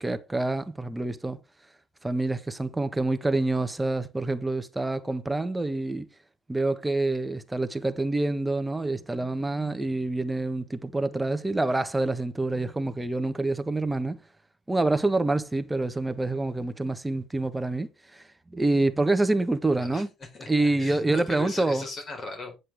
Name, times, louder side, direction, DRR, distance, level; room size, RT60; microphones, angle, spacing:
voice 1, 0.0-1.4 2.0-6.1 6.5-14.2 14.7-18.2 18.5-20.1 20.5-21.8, right 2 dB, 10° right, 1.3 m, -27 dB
voice 2, 19.8-22.6, left 3 dB, 35° left, 4.8 m, -39 dB
10.0 x 8.0 x 3.6 m
supercardioid pair, 100°, 0 cm